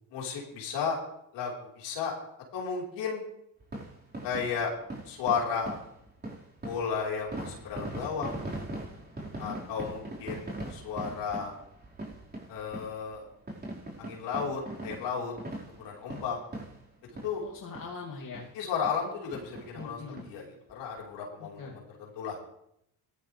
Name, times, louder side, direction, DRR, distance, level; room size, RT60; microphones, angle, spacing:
voice 1, 0.1-1.0 1.3-2.1 2.5-3.2 4.2-4.7 5.1-5.8 6.6-8.4 9.4-11.5 12.5-13.3 14.0-15.3 15.8-16.4 17.2-17.4 18.5-20.4 20.7-22.4, left 6 dB, 80° left, -2 dB, 4.4 m, -33 dB
sound 1, 3.6-17.5 17.8-17.9 18.3-18.5 18.8-19.0 19.3-20.3 20.7-20.8 21.0-21.1, right 1 dB, 25° right, 4.8 m, -41 dB
voice 2, 17.4-18.5 19.7-20.3 21.4-21.8, left 4 dB, 50° left, -3 dB, 2.7 m, -42 dB
18.0 x 13.5 x 3.4 m, 0.75 s
supercardioid pair, 75°, 42 cm